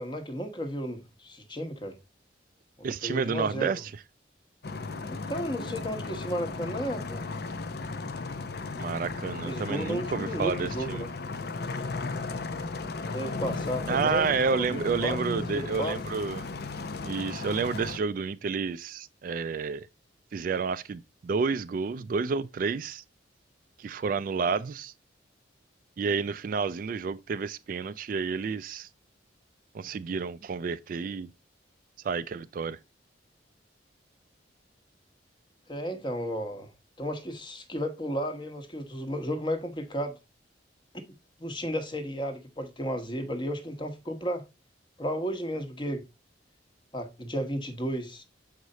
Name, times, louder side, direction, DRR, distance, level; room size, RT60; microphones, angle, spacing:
voice 1, 0.0-2.0 2.8-3.7 5.1-7.2 9.4-11.1 13.1-16.0 35.7-36.7 37.0-40.1 41.4-44.4 45.0-46.1 46.9-48.2, equal, 25° left, 1.1 m, -33 dB
voice 2, 2.8-3.9 8.8-11.0 13.9-16.4 17.0-19.9 20.3-23.0 23.8-24.9 26.0-28.9 29.7-31.3 32.0-32.8, right 5 dB, 45° right, 0.3 m, -30 dB
sound 1, 4.6-18.0, left 3 dB, 55° left, 0.6 m, -35 dB
6.6 x 4.8 x 4.0 m
head